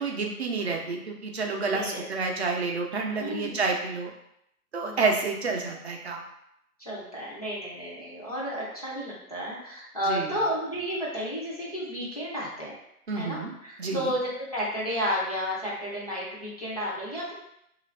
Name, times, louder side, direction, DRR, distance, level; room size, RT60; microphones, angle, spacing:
voice 1, 0.0-4.1 4.7-6.2 10.1-10.4 13.1-13.5 13.8-14.1, right 4 dB, 45° right, 1 dB, 0.6 m, -29 dB
voice 2, 1.7-2.1 3.2-3.6 4.8-5.0 6.8-12.8 13.2-17.3, equal, 25° left, -7 dB, 0.5 m, -32 dB
3.2 x 2.5 x 3.1 m, 0.79 s
hypercardioid pair, 155°, 46 cm